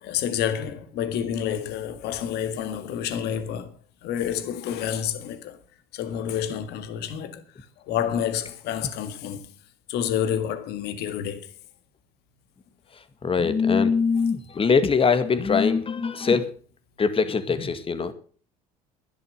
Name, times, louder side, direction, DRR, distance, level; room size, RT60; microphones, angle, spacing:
voice 1, 0.0-3.7 4.0-5.6 5.9-7.4 7.9-9.5 9.9-11.4, left 9 dB, 65° left, 1.8 m, -29 dB
voice 2, 13.2-16.5 17.0-18.1, left 5 dB, 30° left, 1.9 m, -22 dB
12.0 x 10.5 x 6.5 m
hypercardioid pair, 70°, 19 cm